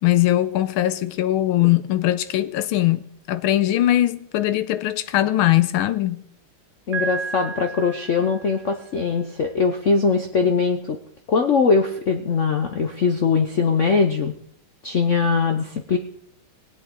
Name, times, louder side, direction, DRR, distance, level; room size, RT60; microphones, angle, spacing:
voice 1, 0.0-6.2, left 14 dB, 80° left, 1.5 m, -20 dB
voice 2, 6.9-11.0 11.3-14.3 14.8-16.0, left 5 dB, 65° left, 0.7 m, -21 dB
Piano, 6.9-8.8, right 5 dB, 30° right, 1.3 m, -32 dB
21.0 x 8.3 x 3.7 m
omnidirectional pair, 2.4 m